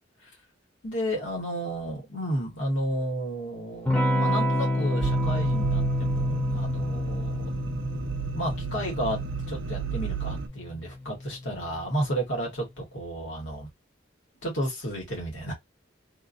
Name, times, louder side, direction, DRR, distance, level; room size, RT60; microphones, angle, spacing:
voice 1, 0.8-7.5 8.3-9.2 9.5-13.7 14.4-15.5, right 1 dB, 80° left, 1.4 m, -32 dB
Electric guitar / Strum, 3.9-12.2, left 1 dB, 10° left, 0.5 m, -29 dB
sound 1, 5.0-10.5, right 7 dB, 85° right, 0.4 m, -32 dB
2.6 x 2.6 x 2.4 m
head